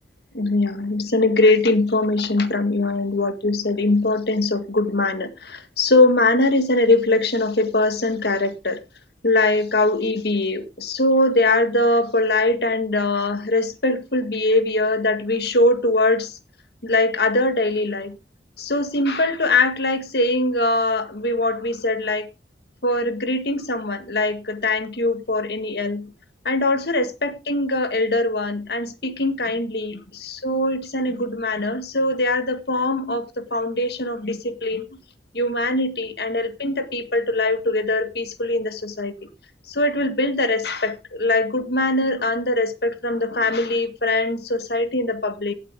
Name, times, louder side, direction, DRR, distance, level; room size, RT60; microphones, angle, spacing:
voice 1, 0.3-8.8 9.2-16.4 16.8-18.2 18.6-22.3 22.8-26.1 26.5-34.8 35.3-39.3 39.7-45.5, left 2 dB, 65° left, 8 dB, 1.9 m, -22 dB
17.0 x 8.3 x 3.7 m, 0.29 s
head